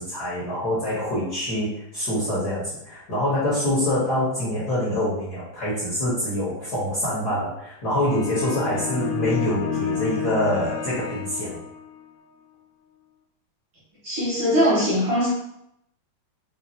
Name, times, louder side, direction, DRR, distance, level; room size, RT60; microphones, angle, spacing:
voice 1, 0.0-11.6, left 1 dB, 55° left, -9 dB, 1.1 m, -25 dB
sound 1, 8.0-12.0, left 6 dB, 75° left, 1.7 m, -30 dB
voice 2, 14.0-15.3, equal, 65° right, -7 dB, 1.2 m, -21 dB
5.6 x 2.4 x 2.8 m, 0.79 s
omnidirectional pair, 3.4 m